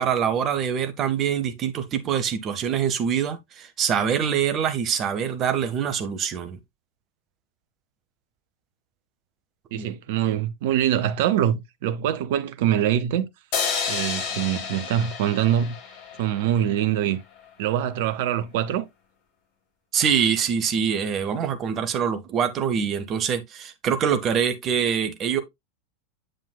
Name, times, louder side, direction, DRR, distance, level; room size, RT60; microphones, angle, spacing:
voice 1, 0.0-6.6 9.7-9.9 19.9-25.4, right 7 dB, 30° right, 1.1 m, -24 dB
voice 2, 9.7-13.3 13.9-15.8 16.2-17.2 17.6-18.9, right 10 dB, 50° right, 0.7 m, -24 dB
sound 1, 13.5-16.8, left 6 dB, 45° left, 1.6 m, -30 dB
7.8 x 7.4 x 2.2 m
figure-of-eight pair, 90°, 0 cm